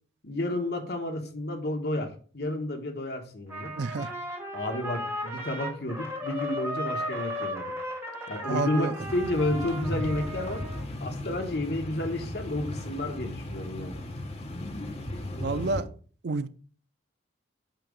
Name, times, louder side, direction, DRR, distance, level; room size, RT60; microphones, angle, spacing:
voice 1, 0.2-3.7 4.5-7.7 8.3-10.6 11.0-14.0, left 1 dB, 60° left, 1.2 m, -31 dB
Trumpet, 3.5-10.8, equal, 15° right, 1.4 m, -35 dB
voice 2, 3.8-4.1 8.5-8.9 15.4-15.9 16.2-16.5, right 3 dB, 60° right, 0.4 m, -29 dB
sound 1, 9.0-15.8, left 1 dB, 35° left, 0.8 m, -36 dB
8.8 x 3.0 x 5.2 m
head